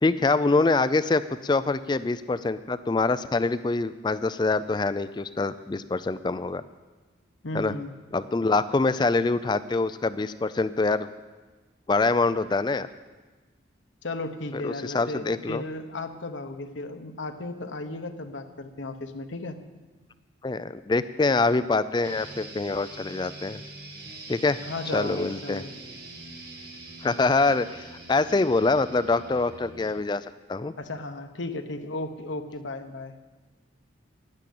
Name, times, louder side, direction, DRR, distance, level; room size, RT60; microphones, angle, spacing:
voice 1, 0.0-6.6 7.5-7.7 8.1-11.1 11.9-12.9 14.5-15.6 20.4-23.6 24.3-24.6 24.9-25.6 27.0-30.2 30.5-30.7, left 3 dB, 25° left, 13 dB, 0.3 m, -25 dB
voice 2, 7.4-7.9 14.0-19.6 24.6-25.7 30.8-33.2, left 2 dB, 80° left, 6 dB, 0.9 m, -35 dB
sound 1, 22.0-30.0, right 2 dB, 50° right, 2.0 m, -44 dB
10.0 x 9.8 x 8.5 m, 1.3 s
head